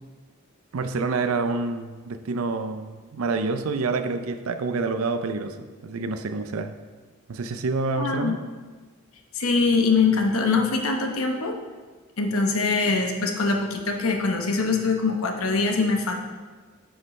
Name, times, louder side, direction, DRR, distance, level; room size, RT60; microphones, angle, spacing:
voice 1, 0.7-6.7 7.3-8.4, right 3 dB, 80° right, 9 dB, 0.5 m, -27 dB
voice 2, 8.0-8.4 9.4-11.6 12.2-16.1, left 4 dB, 80° left, 3 dB, 0.9 m, -23 dB
9.7 x 5.3 x 3.2 m, 1.4 s
head